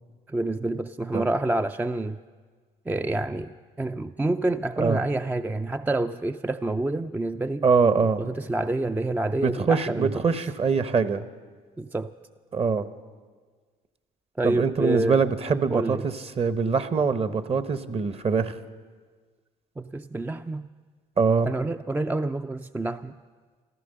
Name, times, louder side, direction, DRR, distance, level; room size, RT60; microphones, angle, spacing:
voice 1, 0.3-2.2 2.9-7.7 8.2-10.1 11.8-12.1 14.4-15.2 15.7-16.0 19.8-20.7 21.4-23.2, right 2 dB, 10° right, 9 dB, 0.4 m, -28 dB
voice 2, 7.6-8.2 9.4-11.2 12.5-12.9 14.4-18.6 21.2-21.5, right 5 dB, 35° right, 13 dB, 0.9 m, -23 dB
15.0 x 13.5 x 6.7 m, 1.5 s
supercardioid pair, 70°, 17 cm